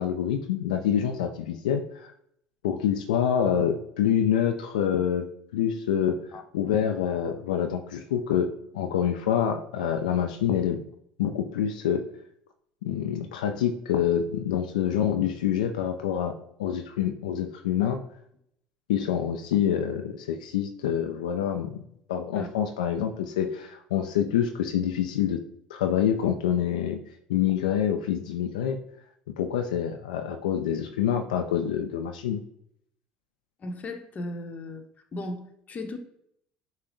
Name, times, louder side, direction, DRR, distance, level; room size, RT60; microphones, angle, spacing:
voice 1, 0.0-2.1 2.6-5.3 5.5-6.2 6.5-8.5 8.7-10.8 11.2-12.0 12.8-16.3 16.6-18.0 18.9-21.8 22.1-25.4 25.7-27.0 27.3-28.8 29.4-32.4, left 9 dB, 85° left, 6 dB, 0.3 m, -26 dB
voice 2, 33.6-34.8 35.1-36.0, left 2 dB, 40° left, 6 dB, 0.8 m, -36 dB
5.8 x 2.1 x 3.8 m, 0.72 s
hypercardioid pair, 70°, 4 cm